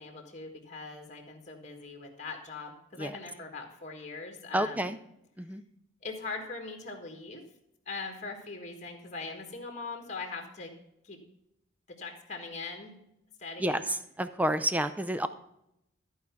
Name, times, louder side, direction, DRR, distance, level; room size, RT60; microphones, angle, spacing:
voice 1, 0.0-4.9 6.0-7.4 7.8-10.7 11.0-11.2 11.9-13.0 13.4-13.8, left 4 dB, 35° left, 3 dB, 1.5 m, -41 dB
voice 2, 4.5-5.0 5.4-5.6 13.6-15.3, right 1 dB, 10° right, 11 dB, 0.4 m, -29 dB
13.5 x 4.8 x 5.8 m, 0.81 s
head